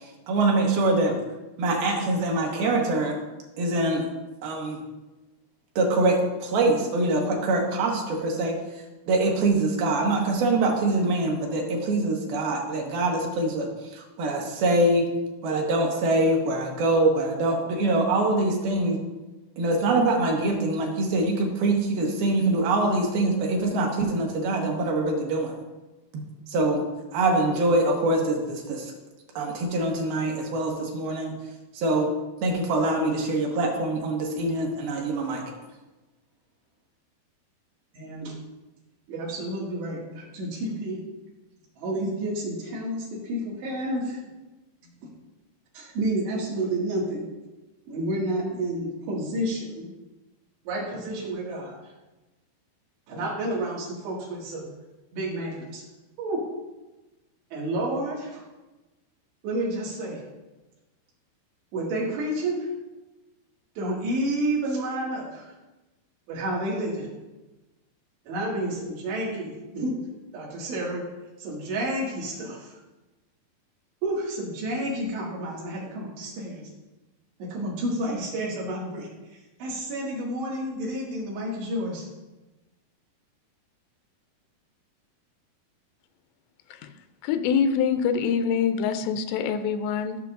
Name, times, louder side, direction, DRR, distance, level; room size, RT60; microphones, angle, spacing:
voice 1, 0.3-1.1 1.6-3.2 3.6-4.0 4.4-4.8 5.8-8.6 9.1-13.7 13.9-15.1 15.4-19.0 19.6-25.5 26.1-26.2 26.5-26.8 27.1-28.9 29.4-31.3 31.7-32.1 32.4-35.4, right 2 dB, 70° right, 0 dB, 2.8 m, -24 dB
voice 2, 37.9-38.4 39.1-41.0 41.8-44.2 44.8-45.1 45.7-47.3 47.9-49.9 50.7-51.9 53.1-54.7 55.1-55.8 56.2-56.4 57.5-58.4 59.4-60.2 61.7-62.7 63.8-65.5 66.3-67.1 68.3-70.0 70.3-71.0 71.4-72.8 74.0-76.6 77.4-82.1, right 1 dB, 90° right, -4 dB, 4.2 m, -30 dB
voice 3, 87.2-90.2, left 7 dB, 90° left, 9 dB, 2.8 m, -25 dB
15.0 x 6.7 x 2.5 m, 1.1 s
omnidirectional pair, 4.8 m